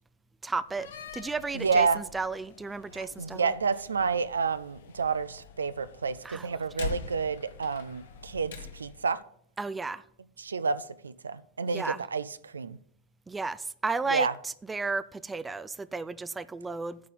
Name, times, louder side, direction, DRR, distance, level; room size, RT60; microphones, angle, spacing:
voice 1, 0.4-0.9 1.1-3.5 6.2-6.5 9.6-10.0 11.7-12.0 13.3-17.0, right 3 dB, 10° right, 0.4 m, -33 dB
Slam, 0.7-9.1, left 5 dB, 60° left, 1.0 m, -44 dB
voice 2, 1.5-2.0 2.9-9.2 10.4-12.8 14.1-14.3, right 5 dB, 75° right, 0.4 m, -29 dB
9.4 x 4.0 x 7.4 m
figure-of-eight pair, 90°, 0 cm